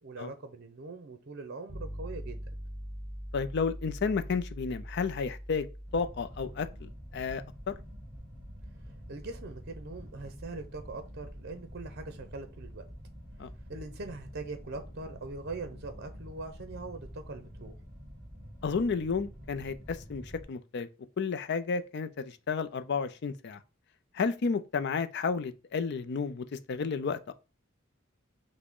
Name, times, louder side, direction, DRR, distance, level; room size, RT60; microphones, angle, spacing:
voice 1, 0.0-2.4 9.1-12.9 13.7-17.7, right 3 dB, 55° right, 0.6 m, -42 dB
sound 1, 1.7-10.7, equal, 10° left, 1.8 m, -44 dB
voice 2, 3.3-5.7 5.9-7.7 13.4-13.5 18.6-20.9 21.2-23.6 24.1-27.3, left 5 dB, 55° left, 0.4 m, -32 dB
sound 2, 5.9-20.4, equal, 10° right, 2.7 m, -47 dB
5.9 x 2.1 x 3.7 m
head